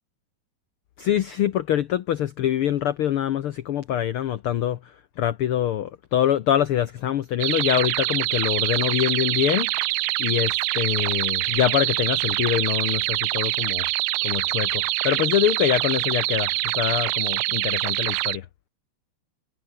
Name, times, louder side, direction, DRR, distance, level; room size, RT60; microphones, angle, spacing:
voice 1, 1.0-13.9 14.2-18.4, left 11 dB, 80° left, 1.2 m, -24 dB
sound 1, 7.4-18.4, right 20 dB, 80° right, 2.1 m, -25 dB
omnidirectional pair, 3.7 m